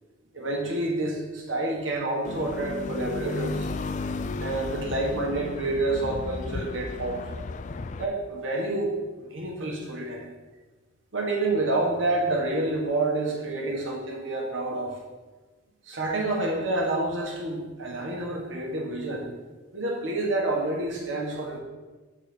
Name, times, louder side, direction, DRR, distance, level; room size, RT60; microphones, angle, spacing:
voice 1, 0.3-3.7 4.4-7.2 8.0-10.3 11.1-15.0 15.9-19.3 19.7-21.6, right 2 dB, 85° right, -1 dB, 1.6 m, -28 dB
sound 1, 2.2-8.0, left 3 dB, 40° left, 0.3 m, -33 dB
7.1 x 4.4 x 6.1 m, 1.3 s
head